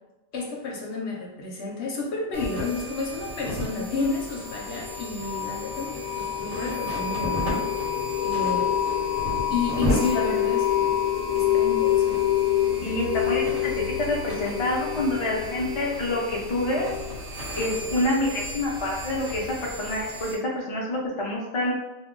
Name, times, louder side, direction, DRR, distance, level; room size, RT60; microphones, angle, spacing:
voice 1, 0.3-7.7 8.2-8.7 9.5-11.0 11.3-12.2 12.8-12.9, left 3 dB, 60° left, -1 dB, 0.9 m, -31 dB
sound 1, 2.3-20.3, equal, 70° right, 1.3 m, -35 dB
sound 2, 4.0-18.4, left 11 dB, 85° left, 1.0 m, -27 dB
voice 2, 12.8-13.7 14.0-16.9 17.3-21.7, left 1 dB, 45° left, -3 dB, 0.4 m, -27 dB
2.7 x 2.2 x 3.7 m, 1.0 s
omnidirectional pair, 1.4 m